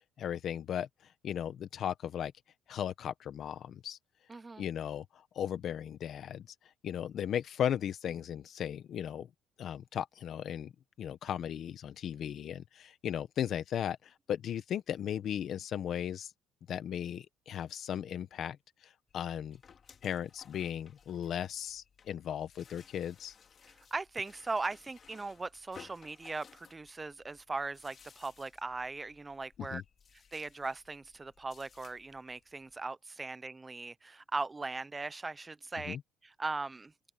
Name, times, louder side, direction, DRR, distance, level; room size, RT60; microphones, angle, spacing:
voice 1, 0.2-0.9 1.2-2.3 2.7-4.0 4.6-5.0 5.3-6.5 6.8-9.3 9.6-10.7 11.0-16.3 16.7-18.6 19.1-19.6 20.0-23.3 29.6-29.8 35.9-36.0, left 9 dB, 55° left, 1.3 m, -36 dB
voice 2, 4.3-4.6 23.7-29.8 30.3-36.0 36.2-36.9, right 3 dB, 15° right, 0.5 m, -39 dB
sound 1, 19.1-32.8, left 7 dB, 40° left, 2.6 m, -59 dB
open air
cardioid pair, 145°, 0 cm